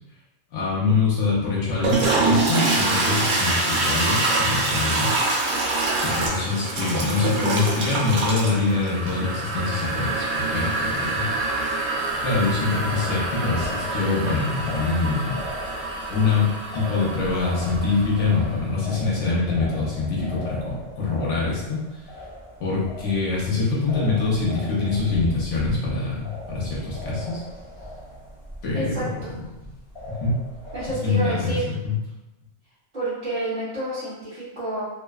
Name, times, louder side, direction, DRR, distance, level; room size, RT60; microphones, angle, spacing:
voice 1, 0.5-5.1 6.0-11.6 12.2-15.4 16.1-16.5 16.7-22.0 22.6-27.4 28.6-29.2 29.6-29.7 30.1-30.3 31.0-32.0, left 4 dB, 70° left, -5 dB, 1.0 m, -24 dB
Toilet flush, 1.7-18.4, right 2 dB, 80° right, 1.0 m, -25 dB
sound 1, 11.9-31.0, equal, 25° left, 0.9 m, -39 dB
voice 2, 28.7-29.3 30.7-31.7 32.9-34.8, right 2 dB, 45° right, -13 dB, 0.9 m, -29 dB
2.5 x 2.2 x 2.2 m, 0.98 s
omnidirectional pair, 1.3 m